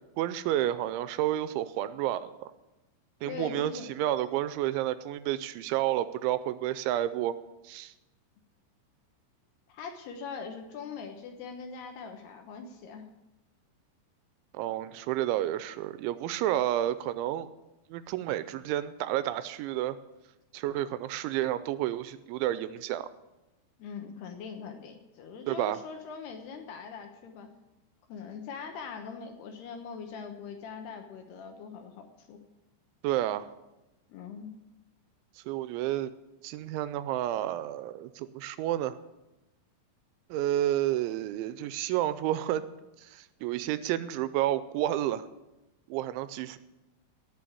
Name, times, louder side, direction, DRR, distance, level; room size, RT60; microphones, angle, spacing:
voice 1, 0.2-2.5 3.2-7.3 7.6-7.9 14.5-17.5 17.9-20.0 20.5-23.1 25.5-25.8 33.0-33.5 35.5-36.1 36.4-39.0 40.3-42.6 43.0-45.3 45.9-46.6, right 13 dB, 85° right, 14 dB, 2.9 m, -30 dB
voice 2, 3.2-3.9 9.7-13.1 23.8-27.5 28.1-32.4 34.1-34.5, left 5 dB, 70° left, 4 dB, 2.8 m, -42 dB
18.0 x 6.3 x 8.5 m, 0.99 s
omnidirectional pair, 5.5 m